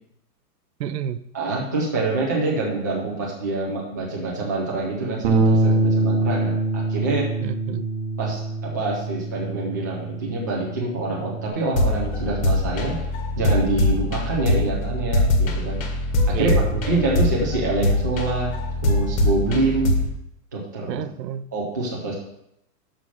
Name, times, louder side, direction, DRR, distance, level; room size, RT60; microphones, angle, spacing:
voice 1, 0.8-1.2 7.4-7.9 16.3-16.9 20.9-21.5, right 10 dB, 85° right, 0.7 m, -29 dB
voice 2, 1.3-7.3 8.2-13.0 13.4-15.8 16.3-18.5 18.8-19.9 20.5-21.0 21.5-22.2, right 2 dB, 15° right, 0.3 m, -26 dB
Bass guitar, 5.2-11.5, right 2 dB, 35° right, 0.9 m, -24 dB
sound 1, 11.7-20.1, left 1 dB, 55° left, 1.7 m, -22 dB
6.3 x 5.6 x 6.2 m
hypercardioid pair, 155°, 49 cm